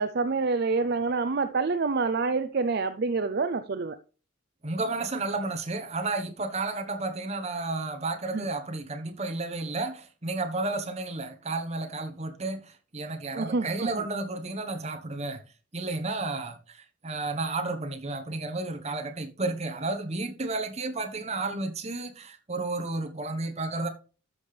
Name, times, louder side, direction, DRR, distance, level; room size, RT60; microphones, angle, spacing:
voice 1, 0.0-4.0 8.3-8.4 13.3-14.0, right 4 dB, 50° right, 0.5 m, -27 dB
voice 2, 4.6-15.4 15.7-23.9, right 2 dB, 30° right, 1.2 m, -32 dB
12.5 x 5.9 x 3.4 m
head